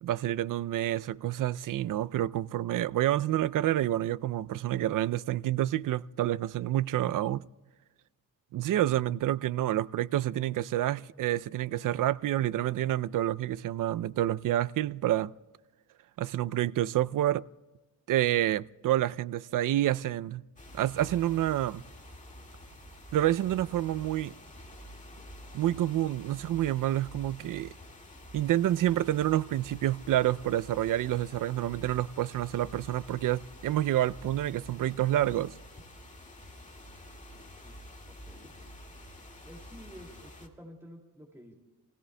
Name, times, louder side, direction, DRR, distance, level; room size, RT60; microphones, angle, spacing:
voice 1, 0.0-7.4 8.5-15.3 16.2-17.4 18.1-20.4 20.7-21.8 23.1-24.3 25.5-27.7 28.3-35.5, right 13 dB, 65° right, 0.5 m, -28 dB
sound 1, 20.6-40.5, left 1 dB, 20° left, 1.9 m, -49 dB
voice 2, 37.6-38.5 39.4-41.5, equal, 5° right, 2.4 m, -51 dB
29.0 x 16.5 x 2.2 m
cardioid pair, 105°, 35 cm